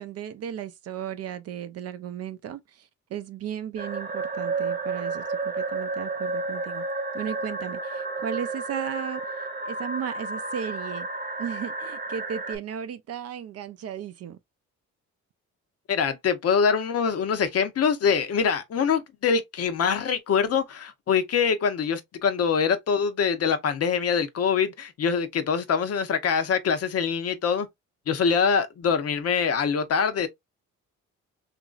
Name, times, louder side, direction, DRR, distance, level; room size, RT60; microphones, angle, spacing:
voice 1, 0.0-6.8 7.1-11.1 11.4-14.4, right 8 dB, 55° right, 0.4 m, -35 dB
sound 1, 3.8-12.6, right 3 dB, 30° right, 1.0 m, -31 dB
voice 2, 15.9-27.7 28.1-30.3, left 6 dB, 55° left, 0.7 m, -24 dB
2.9 x 2.5 x 2.3 m
cardioid pair, 90°, 30 cm